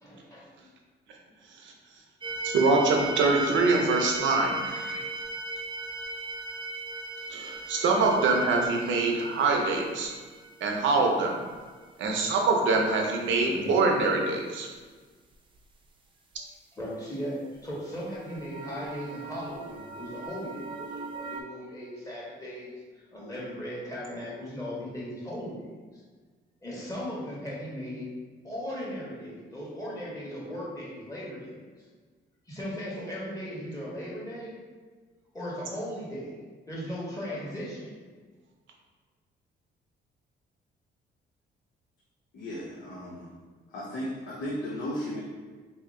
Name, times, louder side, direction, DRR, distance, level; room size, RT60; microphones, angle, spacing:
voice 1, 0.0-0.5 13.4-13.7 16.7-22.7 23.1-25.7 26.6-28.1 28.4-31.5 32.5-34.6 35.3-36.4 36.7-38.0, equal, 15° left, -6 dB, 1.3 m, -37 dB
sound 1, 2.2-11.8 17.9-21.4, right 2 dB, 25° right, 0.5 m, -38 dB
voice 2, 2.4-5.0 7.3-10.1 10.6-11.4 12.0-14.7, right 3 dB, 70° right, 1 dB, 0.7 m, -24 dB
voice 3, 42.3-43.3 43.7-45.2, equal, 65° left, -5 dB, 0.7 m, -35 dB
2.9 x 2.8 x 3.6 m, 1.4 s
cardioid pair, 90°, 20 cm